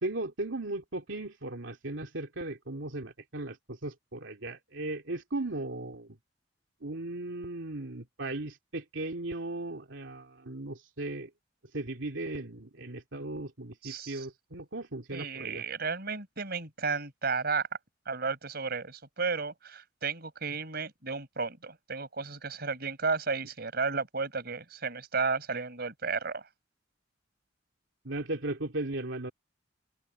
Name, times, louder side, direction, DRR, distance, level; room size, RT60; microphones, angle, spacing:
voice 1, 0.0-6.2 6.8-11.3 11.7-15.6 28.0-29.3, right 2 dB, 90° right, 2.6 m, -37 dB
voice 2, 13.8-14.2 15.1-17.7 18.1-26.4, right 4 dB, 55° right, 5.1 m, -33 dB
head